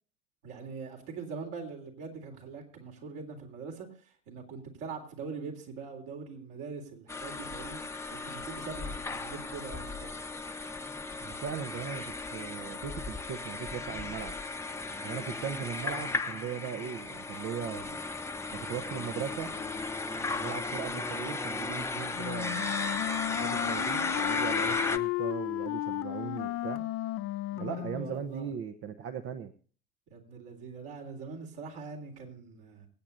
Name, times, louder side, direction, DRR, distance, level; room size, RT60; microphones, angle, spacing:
voice 1, 0.4-7.8 8.1-10.1 27.5-28.5 30.1-32.9, right 5 dB, 60° right, 3.6 m, -43 dB
sound 1, 7.1-25.0, left 3 dB, 10° left, 1.0 m, -35 dB
voice 2, 11.2-14.4 15.0-18.0 18.5-19.5 20.4-22.7 23.3-26.8 27.6-29.5, right 8 dB, 40° right, 1.0 m, -38 dB
Wind instrument woodwind instrument, 22.1-28.2, left 15 dB, 45° left, 0.6 m, -34 dB
25.0 x 8.6 x 2.6 m
figure-of-eight pair, 75°, 32 cm